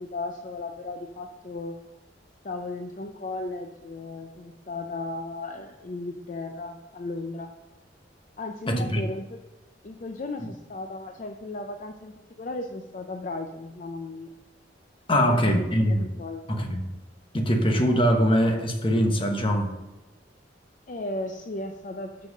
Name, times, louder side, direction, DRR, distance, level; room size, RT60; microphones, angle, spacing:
voice 1, 0.0-1.8 2.4-7.5 8.4-9.4 9.8-14.3 15.1-15.7 16.2-16.4 20.9-22.3, left 2 dB, 45° left, 0.5 m, -35 dB
voice 2, 8.7-9.0 15.1-16.1 16.5-16.8 17.3-19.7, equal, 30° left, 1.0 m, -22 dB
6.2 x 5.7 x 6.6 m
head